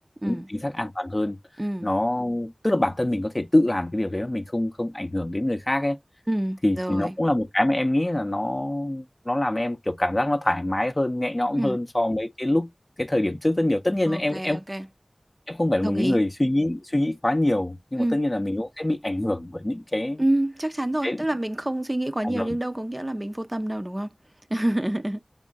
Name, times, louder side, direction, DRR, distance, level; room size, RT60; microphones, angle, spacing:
voice 1, 0.2-1.4 1.8-6.0 6.6-12.7 13.0-14.6 15.5-20.2 21.0-21.2 22.2-22.6, left 1 dB, 35° left, 0.5 m, -25 dB
voice 2, 1.6-1.9 6.3-7.1 11.6-11.8 14.1-14.8 15.8-16.2 18.0-18.2 20.2-24.1 24.5-25.2, right 1 dB, 30° right, 0.5 m, -27 dB
3.6 x 2.1 x 3.8 m
wide cardioid pair, 45°, 0 cm